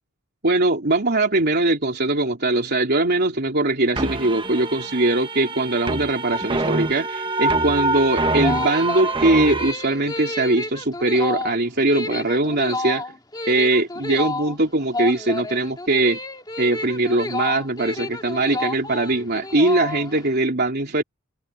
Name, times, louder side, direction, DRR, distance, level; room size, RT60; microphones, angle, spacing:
voice 1, 0.4-13.0 13.5-16.2 16.6-21.0, right 2 dB, 50° right, 3.6 m, -21 dB
sound 1, 4.0-9.7, right 2 dB, 25° right, 1.4 m, -25 dB
sound 2, 8.2-20.3, left 2 dB, 20° left, 2.0 m, -30 dB
open air
head